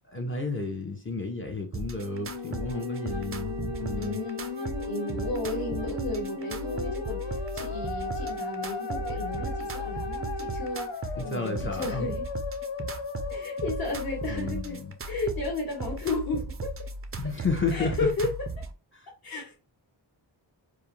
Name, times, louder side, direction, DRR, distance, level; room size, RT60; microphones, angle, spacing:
voice 1, 0.1-4.2 11.2-12.1 14.3-14.8 17.2-18.1, left 3 dB, 25° left, 0.6 m, -32 dB
sound 1, 1.7-18.7, right 2 dB, 30° right, 0.4 m, -37 dB
Musical instrument, 1.9-15.3, left 6 dB, 75° left, 0.5 m, -37 dB
Wind instrument woodwind instrument, 2.3-10.9, right 1 dB, 85° right, 0.7 m, -38 dB
voice 2, 4.0-4.4 4.9-12.3 13.3-16.7 17.7-18.3 19.2-19.5, left 2 dB, 50° left, 1.1 m, -33 dB
2.4 x 2.0 x 3.0 m
wide cardioid pair, 70°, 46 cm